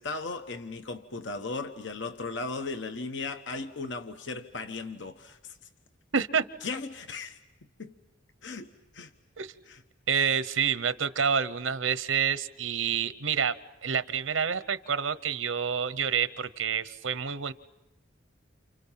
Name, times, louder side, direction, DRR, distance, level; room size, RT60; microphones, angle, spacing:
voice 1, 0.0-5.6 6.6-7.4 7.8-7.9 8.4-9.1 9.7-9.8, left 3 dB, 65° left, 1.1 m, -37 dB
voice 2, 6.1-6.4 9.4-9.5 10.1-13.6 13.8-17.5, right 7 dB, 85° right, 0.9 m, -28 dB
29.5 x 29.5 x 5.8 m
head